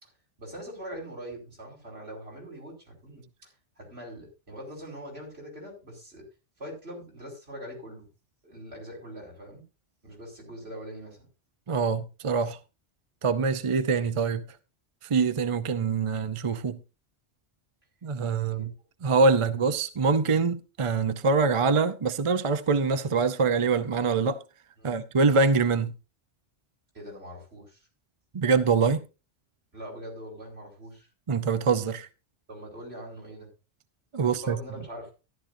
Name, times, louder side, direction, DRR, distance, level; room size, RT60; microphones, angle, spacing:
voice 1, 0.4-6.2 6.6-8.1 8.4-9.6 10.0-11.3 18.5-18.7 24.8-25.0 26.9-27.9 29.7-31.1 32.5-33.5 34.3-35.1, equal, 60° right, 5.3 m, -42 dB
voice 2, 11.7-12.6 13.2-14.4 15.1-16.8 18.0-18.7 19.0-24.4 24.8-25.9 28.3-29.0 31.3-32.1 34.1-34.6, right 4 dB, 35° right, 0.6 m, -24 dB
14.0 x 11.5 x 2.6 m
omnidirectional pair, 1.2 m